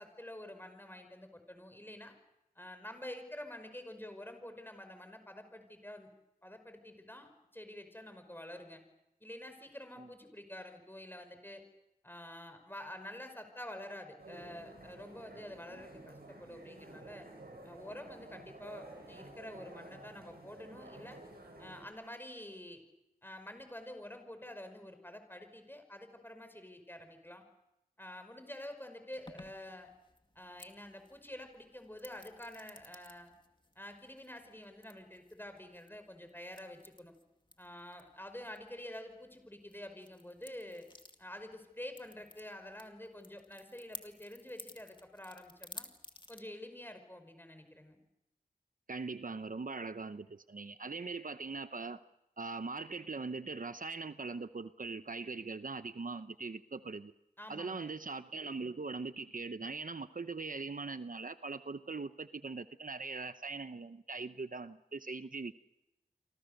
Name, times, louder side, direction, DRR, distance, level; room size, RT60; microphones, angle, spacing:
voice 1, 0.0-2.1 2.6-6.1 6.4-8.8 9.2-11.6 12.0-17.3 17.6-21.2 21.6-22.8 23.2-27.4 28.0-29.9 30.4-33.3 33.8-37.1 37.6-40.9 41.2-45.9 46.3-48.0 57.4-57.9, left 1 dB, 15° left, 7 dB, 5.2 m, -48 dB
sound 1, 14.2-21.9, right 2 dB, 85° right, 8.0 m, -52 dB
sound 2, 29.1-46.4, left 1 dB, 30° left, 2.3 m, -56 dB
voice 2, 48.9-52.0 52.4-57.1 57.5-65.6, right 4 dB, 60° right, 11 dB, 0.8 m, -41 dB
28.5 x 25.0 x 6.7 m, 0.90 s
wide cardioid pair, 50°, 16 cm